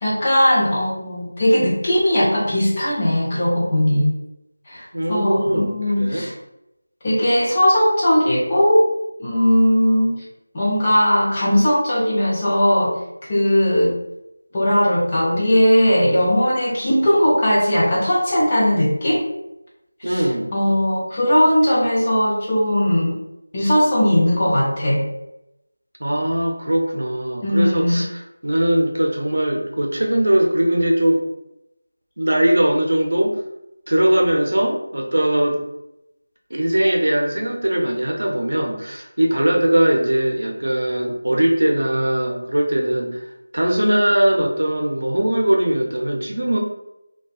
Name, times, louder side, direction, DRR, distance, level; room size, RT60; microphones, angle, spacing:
voice 1, 0.0-4.1 4.7-4.8 5.1-6.3 7.0-8.9 9.2-10.2 10.5-13.0 13.3-13.9 14.5-19.2 20.0-20.2 20.5-23.2 23.5-25.0 27.4-28.0, equal, 20° left, -6 dB, 0.5 m, -18 dB
voice 2, 4.9-5.7 6.0-6.2 20.0-20.5 26.0-31.2 32.2-33.4 33.9-35.6 36.5-43.2 43.5-46.6, right 1 dB, 75° right, 1 dB, 0.6 m, -20 dB
2.7 x 2.2 x 2.4 m, 0.87 s
figure-of-eight pair, 175°, 0 cm